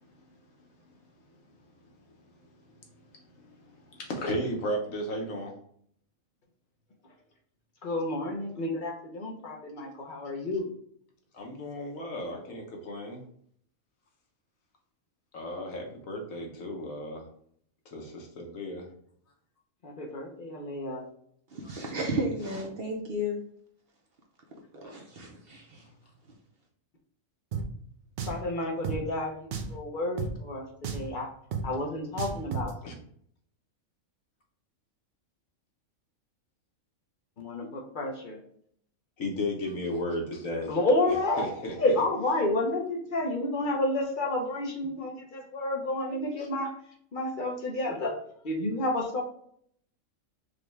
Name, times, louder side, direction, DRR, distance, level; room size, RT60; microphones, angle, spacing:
voice 1, 4.0-5.5 11.3-13.2 15.3-17.2 17.9-18.9 32.8-32.9 39.2-40.7 41.4-41.7 46.4-46.5, left 1 dB, 75° left, 1 dB, 1.3 m, -34 dB
voice 2, 7.8-10.7 19.8-21.0 28.3-31.3 31.6-32.7 37.4-38.4 40.7-46.7 47.1-48.1 48.4-49.2, left 2 dB, 45° left, 0 dB, 0.8 m, -30 dB
voice 3, 21.5-23.4 24.8-25.9, equal, 55° right, 0 dB, 0.8 m, -33 dB
Drum, 27.5-27.7 28.2-28.4 28.8-29.0 29.5-29.8 30.2-30.3 30.8-31.1 31.5-31.7 32.2-32.7, right 5 dB, 75° right, 0.4 m, -32 dB
5.0 x 2.3 x 3.2 m, 0.63 s
omnidirectional pair, 1.4 m